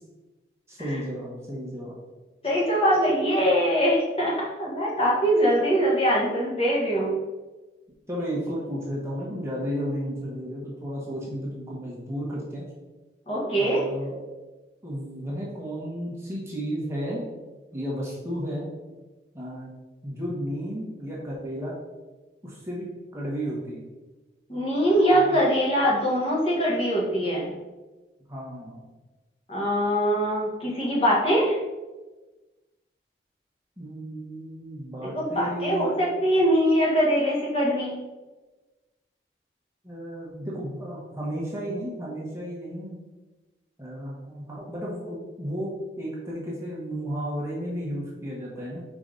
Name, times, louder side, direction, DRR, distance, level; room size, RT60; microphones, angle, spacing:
voice 1, 0.7-2.0 8.1-12.6 13.6-14.2 14.8-17.2 17.7-18.7 19.3-19.7 20.0-21.8 22.4-23.8 25.1-25.4 28.3-28.9 33.8-35.9 39.8-43.0 43.8-48.8, equal, 15° right, -6 dB, 1.3 m, -33 dB
voice 2, 2.4-7.1 13.3-13.8 24.5-27.5 29.5-31.6 35.2-38.0, equal, 30° left, -5 dB, 1.5 m, -23 dB
5.1 x 4.9 x 3.9 m, 1.2 s
head